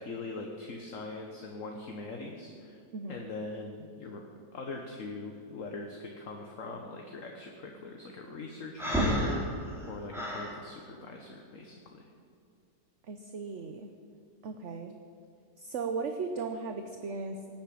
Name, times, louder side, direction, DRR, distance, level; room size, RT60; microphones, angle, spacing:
voice 1, 0.0-2.8 3.1-4.2 4.5-12.1, left 3 dB, 55° left, 2 dB, 1.6 m, -42 dB
voice 2, 2.9-3.2 13.1-13.9 14.4-14.9 15.6-17.5, right 4 dB, 55° right, 6 dB, 1.0 m, -36 dB
Breathing, 8.8-10.5, equal, ahead, 3.8 m, -30 dB
18.5 x 8.9 x 8.6 m, 2.4 s
omnidirectional pair, 1.7 m